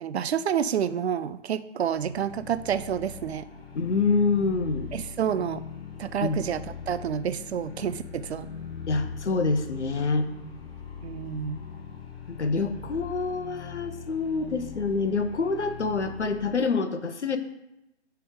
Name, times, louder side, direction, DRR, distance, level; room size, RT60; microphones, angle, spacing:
voice 1, 0.0-3.5 4.9-5.6 6.0-8.5 11.0-11.6, right 8 dB, 65° right, 14 dB, 0.5 m, -29 dB
sound 1, 1.8-16.6, left 7 dB, 60° left, 1.4 m, -41 dB
voice 2, 3.8-4.9 6.2-6.4 8.9-10.3 12.3-17.4, left 4 dB, 80° left, 9 dB, 0.9 m, -26 dB
10.0 x 3.4 x 3.6 m, 0.89 s
figure-of-eight pair, 135°, 34 cm